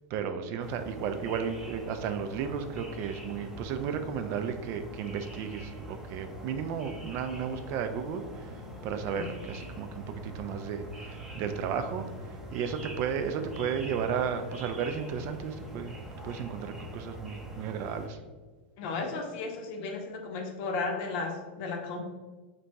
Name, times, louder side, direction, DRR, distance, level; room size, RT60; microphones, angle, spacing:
voice 1, 0.1-12.0 12.5-15.9 16.2-18.2, right 7 dB, 45° right, 8 dB, 0.3 m, -34 dB
sound 1, 0.6-18.1, right 1 dB, 5° right, 0.6 m, -43 dB
voice 2, 18.8-22.0, left 3 dB, 55° left, 3 dB, 0.7 m, -34 dB
2.9 x 2.6 x 3.3 m, 1.3 s
hypercardioid pair, 115°, 6 cm